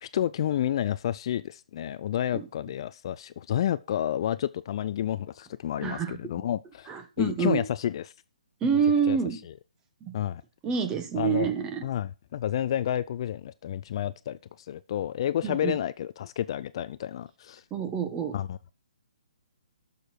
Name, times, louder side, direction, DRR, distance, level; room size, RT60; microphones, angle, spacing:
voice 1, 0.0-8.1 9.1-9.2 10.1-10.4 11.2-11.5 11.8-14.4 14.7-17.6 18.3-18.7, left 11 dB, 45° left, 0.4 m, -30 dB
voice 2, 5.8-6.2 6.9-7.6 8.6-9.4 10.0-10.1 10.6-11.9 15.4-15.7 17.7-18.4, right 7 dB, 20° right, 1.4 m, -27 dB
12.5 x 6.6 x 4.5 m
figure-of-eight pair, 140°, 4 cm